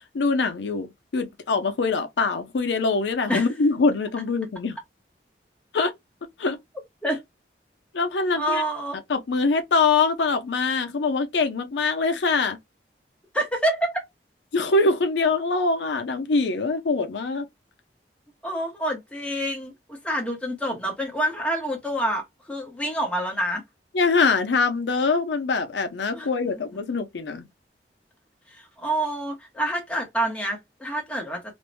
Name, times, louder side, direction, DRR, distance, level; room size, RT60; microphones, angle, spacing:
voice 1, 0.1-4.8 5.7-5.9 6.4-6.6 7.9-8.6 9.1-12.6 14.5-17.5 23.9-27.5, left 4 dB, 90° left, 0.5 m, -23 dB
voice 2, 8.3-9.0 13.3-14.0 18.4-23.6 26.1-26.3 28.5-31.5, right 1 dB, 5° left, 0.7 m, -27 dB
2.5 x 2.1 x 3.0 m
head